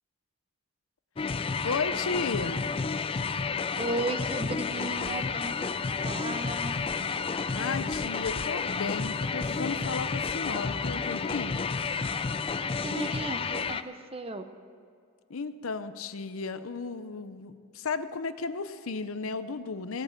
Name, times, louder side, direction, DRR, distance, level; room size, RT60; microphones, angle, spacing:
sound 1, 1.2-13.8, left 5 dB, 25° left, 0.3 m, -31 dB
voice 1, 1.6-2.6 7.5-11.7 15.3-20.0, left 4 dB, 65° left, 12 dB, 0.7 m, -34 dB
voice 2, 3.8-5.8 6.0-6.8 12.8-14.5, right 2 dB, 25° right, 9 dB, 0.6 m, -35 dB
17.0 x 8.8 x 7.5 m, 2.3 s
head